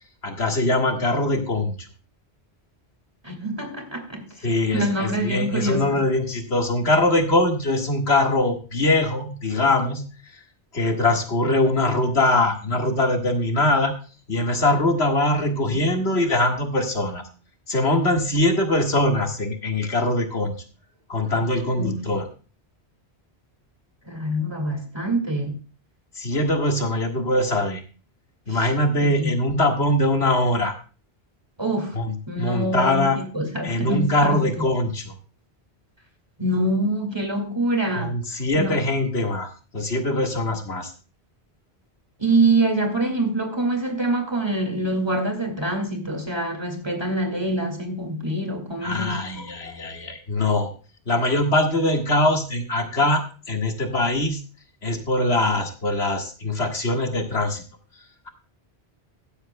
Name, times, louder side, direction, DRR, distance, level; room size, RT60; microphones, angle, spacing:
voice 1, 0.2-1.9 4.4-10.0 10.7-13.9 14.3-17.3 17.7-20.5 21.1-22.3 26.2-27.8 28.5-30.7 31.9-33.2 33.6-35.2 37.9-40.9 48.8-50.7 51.1-54.4 54.8-57.6, left 1 dB, 75° left, 2.0 m, -22 dB
voice 2, 3.2-4.2 4.7-6.0 21.8-22.1 24.1-25.5 29.0-29.3 31.6-32.0 32.3-34.5 36.4-38.2 38.5-38.8 42.2-49.2, right 2 dB, 25° right, 2.2 m, -25 dB
15.5 x 12.0 x 2.2 m
omnidirectional pair, 1.1 m